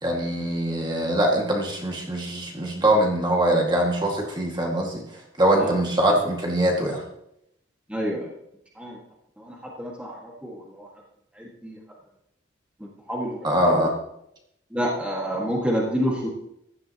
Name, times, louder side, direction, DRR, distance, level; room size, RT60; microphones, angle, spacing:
voice 1, 0.0-5.0 5.4-7.0 13.4-13.9, right 1 dB, 25° right, 0 dB, 2.0 m, -22 dB
voice 2, 7.9-8.3 8.7-9.0 9.4-10.9 11.4-11.8 12.8-13.5 14.7-16.3, equal, 5° right, -3 dB, 1.8 m, -28 dB
15.5 x 11.5 x 3.0 m, 0.78 s
head